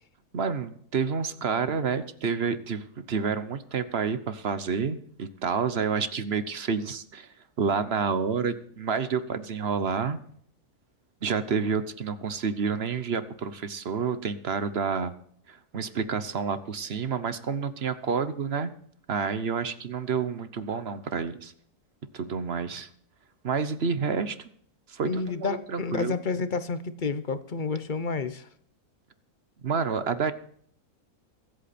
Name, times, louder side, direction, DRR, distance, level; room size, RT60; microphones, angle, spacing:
voice 1, 0.3-7.3 7.6-10.2 11.2-15.1 15.5-18.7 19.1-21.5 22.1-22.9 23.4-24.4 24.9-26.1 29.6-30.3, right 5 dB, 50° right, 13 dB, 1.0 m, -29 dB
voice 2, 25.0-28.5, left 4 dB, 40° left, 13 dB, 0.8 m, -30 dB
23.0 x 8.3 x 4.3 m, 0.63 s
omnidirectional pair, 1.6 m